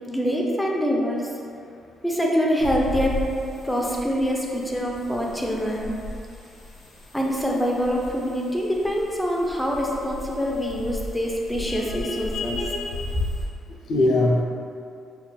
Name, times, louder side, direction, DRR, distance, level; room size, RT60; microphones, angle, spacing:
voice 1, 0.1-1.3 2.0-3.3 3.6-5.9 7.1-12.6 13.1-13.2, equal, 5° left, -2 dB, 0.5 m, -25 dB
sound 1, 2.6-13.4, left 1 dB, 85° left, 0.9 m, -36 dB
voice 2, 11.7-13.1 13.9-14.4, left 2 dB, 65° left, -1 dB, 0.4 m, -24 dB
5.5 x 2.3 x 2.2 m, 2.4 s
cardioid pair, 90°, 0 cm